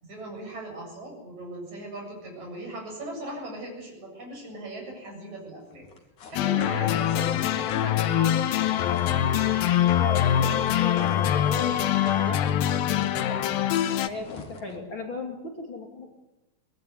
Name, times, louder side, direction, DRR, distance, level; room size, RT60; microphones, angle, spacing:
voice 1, 0.0-5.9 6.3-8.1, right 1 dB, 50° right, 0 dB, 9.0 m, -38 dB
sound 1, 5.6-11.9 12.2-14.9, left 4 dB, 60° left, 4.0 m, -46 dB
sound 2, 6.4-14.1, left 11 dB, 85° left, 2.9 m, -24 dB
Wind instrument woodwind instrument, 8.1-12.4, left 7 dB, 10° left, 2.5 m, -33 dB
voice 2, 10.0-11.7 12.1-13.4 14.0-16.1, left 4 dB, 35° left, 1 dB, 3.1 m, -36 dB
23.0 x 20.5 x 9.5 m, 0.97 s
omnidirectional pair, 4.1 m